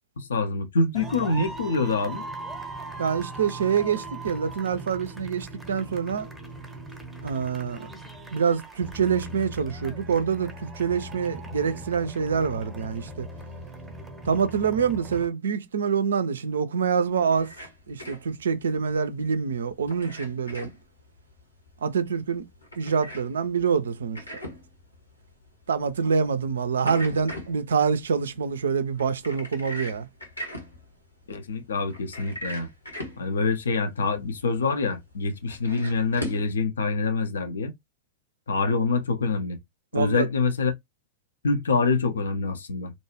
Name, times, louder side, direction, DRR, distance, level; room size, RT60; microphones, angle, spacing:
voice 1, 0.2-2.2 31.3-32.7 33.2-37.7 38.5-39.6 39.9-40.7 41.4-42.9, left 4 dB, 70° left, 0.5 m, -25 dB
sound 1, 0.9-15.2, right 2 dB, 10° right, 0.7 m, -39 dB
voice 2, 3.0-6.3 7.2-7.9 8.3-13.3 14.3-17.5 17.9-20.7 21.8-22.4 22.8-24.2 25.7-30.1 39.9-40.3, right 6 dB, 65° right, 0.4 m, -26 dB
sound 2, 17.0-36.5, equal, 85° left, 1.1 m, -42 dB
2.6 x 2.2 x 2.9 m
figure-of-eight pair, 90°, 0 cm